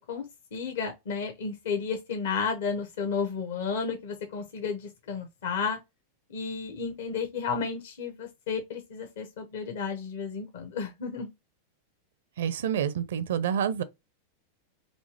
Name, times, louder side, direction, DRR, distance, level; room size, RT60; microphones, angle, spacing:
voice 1, 0.5-5.8 6.3-11.3, left 5 dB, 60° left, 0.9 m, -32 dB
voice 2, 12.4-13.8, right 8 dB, 60° right, 0.5 m, -28 dB
4.3 x 2.9 x 2.9 m
figure-of-eight pair, 90°, 0 cm